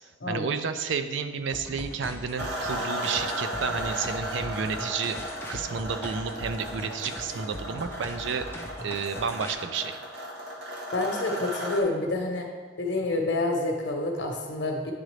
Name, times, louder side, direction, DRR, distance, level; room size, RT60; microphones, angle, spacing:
voice 1, 0.3-5.2 5.5-8.5 8.8-10.0, right 5 dB, 75° right, 9 dB, 0.4 m, -31 dB
sound 1, 1.5-9.5, left 1 dB, 10° left, 0.4 m, -41 dB
sound 2, 2.4-11.8, equal, 55° right, 0.8 m, -35 dB
voice 2, 10.9-12.5 12.8-14.9, left 2 dB, 65° left, 2 dB, 1.0 m, -28 dB
9.3 x 3.8 x 3.2 m, 1.5 s
head